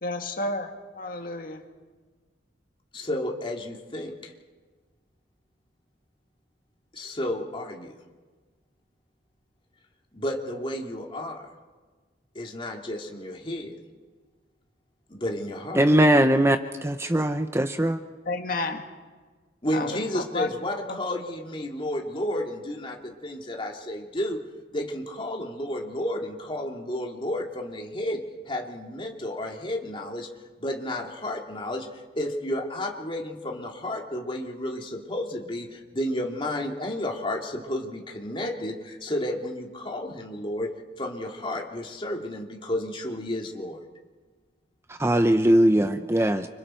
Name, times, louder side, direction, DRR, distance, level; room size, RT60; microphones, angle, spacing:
voice 1, 0.0-0.7 1.0-1.6 18.3-18.8 19.7-19.9 20.3-20.5, left 2 dB, 50° left, 4 dB, 2.0 m, -30 dB
voice 2, 2.9-4.3 6.9-8.0 10.1-11.5 12.3-13.8 15.1-15.8 19.6-24.4 24.7-28.2 28.5-30.3 30.6-40.7 41.0-43.8, left 1 dB, 30° left, 0 dB, 2.6 m, -32 dB
voice 3, 15.8-16.6 16.8-18.0 45.0-46.5, right 1 dB, 15° right, 8 dB, 0.7 m, -20 dB
30.0 x 26.0 x 4.5 m, 1.4 s
head